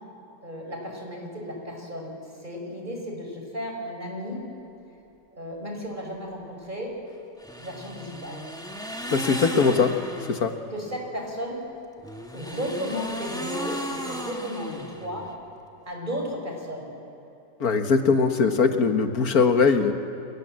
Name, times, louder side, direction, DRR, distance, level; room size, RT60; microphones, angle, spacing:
voice 1, 0.4-2.1 2.4-4.4 5.3-6.9 7.6-8.4 9.6-9.8 10.7-11.6 12.3-15.3 15.9-17.0, equal, 25° right, 0 dB, 5.5 m, -34 dB
sound 1, 7.4-10.5 12.0-15.3, equal, ahead, 2.1 m, -35 dB
voice 2, 9.1-9.9 10.3-10.5 17.6-19.9, left 5 dB, 55° left, 6 dB, 1.9 m, -21 dB
29.5 x 25.5 x 7.7 m, 3.0 s
omnidirectional pair, 1.9 m